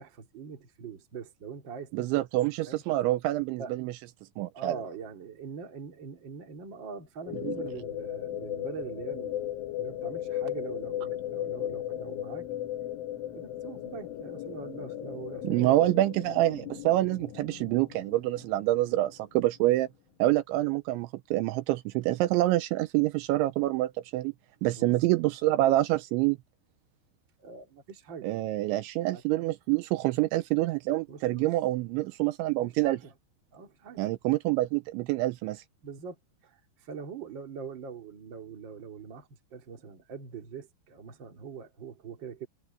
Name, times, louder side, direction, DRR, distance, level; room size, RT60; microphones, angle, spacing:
voice 1, 0.0-2.2 2.6-2.8 3.6-3.7 4.5-9.4 9.8-12.4 13.3-15.9 24.8-24.9 27.4-28.3 29.1-29.2 31.1-31.5 32.6-33.1 33.5-34.0 35.8-36.2 36.4-42.5, right 6 dB, 35° right, 2.2 m, -43 dB
voice 2, 1.9-3.9 4.4-4.7 7.4-7.6 15.4-19.9 20.2-24.3 24.6-26.4 28.2-33.0 34.0-35.6, right 16 dB, 85° right, 2.9 m, -26 dB
sound 1, 7.3-19.5, left 12 dB, 80° left, 4.5 m, -37 dB
omnidirectional pair, 5.6 m